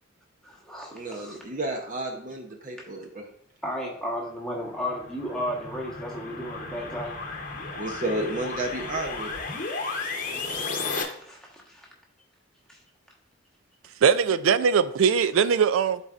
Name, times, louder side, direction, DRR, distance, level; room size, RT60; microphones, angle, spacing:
voice 1, 0.4-1.4 3.6-7.2 10.2-11.9 12.7-12.8, equal, 5° left, 1.2 m, -34 dB
voice 2, 0.9-3.2 7.8-9.3, right 2 dB, 40° right, 0.7 m, -31 dB
sound 1, 4.5-11.0, left 3 dB, 40° left, 0.8 m, -34 dB
voice 3, 14.0-16.0, right 6 dB, 85° right, 0.4 m, -21 dB
11.5 x 4.1 x 2.5 m
head